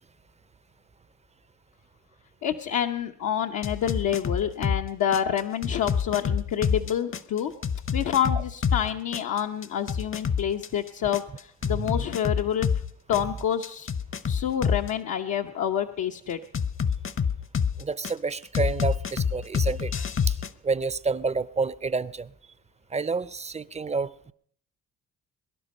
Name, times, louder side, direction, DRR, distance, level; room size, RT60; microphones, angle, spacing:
voice 1, 2.4-7.5 7.9-12.7 13.1-13.9 14.3-16.4, left 9 dB, 75° left, 0.9 m, -28 dB
sound 1, 3.6-4.8 5.1-8.8 9.1-12.8 13.1-14.9 16.5-18.1 18.5-20.5, left 6 dB, 45° left, 0.9 m, -26 dB
voice 2, 11.6-12.1 17.8-20.4 20.6-22.3 22.9-24.3, right 4 dB, 20° right, 0.6 m, -29 dB
22.5 x 11.5 x 5.4 m
cardioid pair, 90°, 30 cm